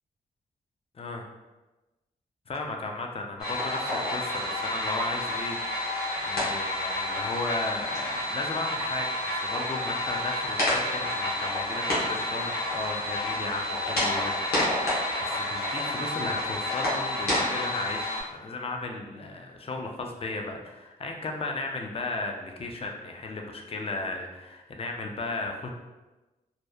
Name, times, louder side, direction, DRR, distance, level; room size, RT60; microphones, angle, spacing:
voice 1, 2.5-5.9 6.2-25.7, left 3 dB, 35° left, 2 dB, 0.4 m, -35 dB
sound 1, 3.4-18.2, left 1 dB, 80° left, 0.9 m, -29 dB
2.6 x 2.1 x 2.3 m, 1.1 s
cardioid pair, 50°, 16 cm